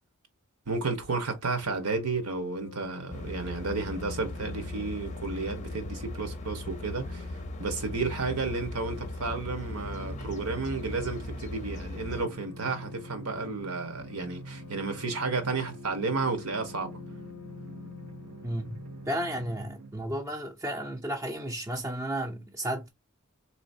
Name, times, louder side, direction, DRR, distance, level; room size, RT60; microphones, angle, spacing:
voice 1, 0.7-7.3 7.6-17.0, right 4 dB, 90° right, 1.3 m, -32 dB
sound 1, 1.6-19.5, left 7 dB, 80° left, 0.5 m, -48 dB
sound 2, 3.1-12.3, left 1 dB, 35° left, 0.6 m, -38 dB
sound 3, 9.2-19.9, right 3 dB, 65° right, 0.5 m, -46 dB
voice 2, 18.4-18.7 19.1-22.9, right 1 dB, 15° right, 0.5 m, -33 dB
4.0 x 3.0 x 2.6 m
head